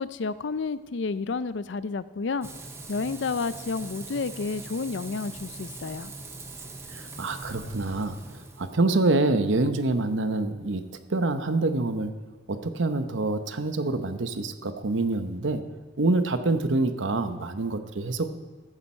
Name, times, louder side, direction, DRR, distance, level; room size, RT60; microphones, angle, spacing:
voice 1, 0.0-2.5 2.9-6.1, left 4 dB, 70° left, 15 dB, 0.5 m, -30 dB
Frying (food), 2.4-8.8, right 2 dB, 15° right, 0.8 m, -41 dB
voice 2, 6.9-10.8 11.1-12.1 12.5-15.6 16.0-18.3, right 2 dB, 80° right, 9 dB, 0.9 m, -26 dB
14.5 x 9.9 x 4.4 m, 1.4 s
head